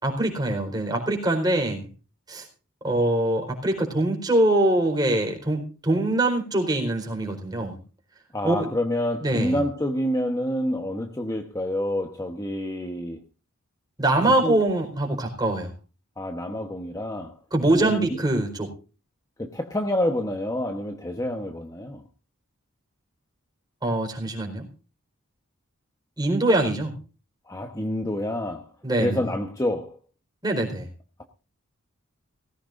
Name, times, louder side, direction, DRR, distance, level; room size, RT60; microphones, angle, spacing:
voice 1, 0.0-1.9 2.3-2.5 2.8-7.8 8.4-8.7 9.2-9.6 14.0-15.7 17.5-18.7 23.8-24.7 26.2-27.0 28.8-29.2 30.4-30.9, right 1 dB, 20° right, 4.5 m, -23 dB
voice 2, 8.3-13.2 14.2-14.6 16.2-17.4 17.8-18.1 19.4-22.0 27.5-28.7 29.0-30.0, left 1 dB, 15° left, 1.0 m, -28 dB
18.5 x 16.0 x 2.6 m
head